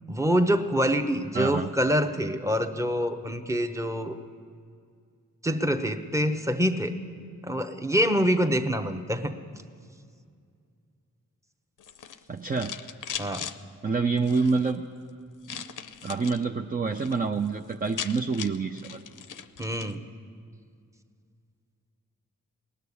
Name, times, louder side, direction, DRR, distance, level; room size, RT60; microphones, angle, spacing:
voice 1, 0.1-4.1 5.4-7.0 7.4-9.3 13.2-13.4 19.6-20.0, equal, 10° right, 7 dB, 0.9 m, -25 dB
voice 2, 1.3-1.7 12.3-12.7 13.8-14.8 15.5-15.6 16.0-19.0, right 4 dB, 25° right, 4 dB, 0.6 m, -27 dB
sound 1, 11.8-13.6 14.2-14.7 15.4-16.4 16.8-17.2 17.5-17.6 17.7-20.0, left 9 dB, 65° left, 0.6 m, -39 dB
18.5 x 6.7 x 9.8 m, 2.2 s
cardioid pair, 60°, 33 cm